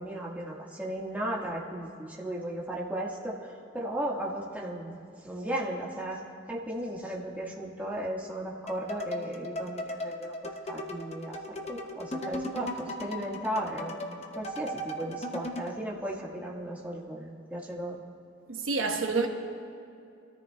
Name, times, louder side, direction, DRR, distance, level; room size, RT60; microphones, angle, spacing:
voice 1, 0.0-6.2 6.5-18.0, right 1 dB, 10° right, 1.5 m, -36 dB
sound 1, 8.7-15.8, left 1 dB, 35° left, 0.8 m, -37 dB
voice 2, 18.5-19.3, right 4 dB, 80° right, 1.1 m, -28 dB
28.5 x 13.5 x 2.2 m
head